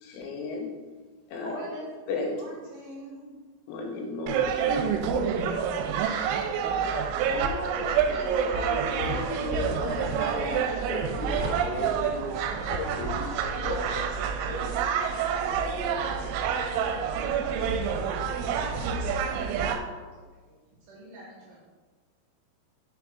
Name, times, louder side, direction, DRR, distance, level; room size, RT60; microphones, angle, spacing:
voice 1, 0.0-0.8 1.3-1.7 2.1-2.3 3.7-5.0 6.3-6.5, left 3 dB, 85° left, 0 dB, 3.2 m, -35 dB
voice 2, 1.4-1.9 7.3-13.3 13.6-14.0 15.6-15.8, left 1 dB, 65° left, -11 dB, 2.0 m, -35 dB
voice 3, 2.1-3.4 13.1-14.0 14.4-14.7 15.0-21.6, right 1 dB, 65° right, -6 dB, 3.0 m, -49 dB
sound 1, 4.3-19.8, right 7 dB, 90° right, 3.0 m, -28 dB
6.2 x 4.7 x 3.5 m, 1.4 s
omnidirectional pair, 5.4 m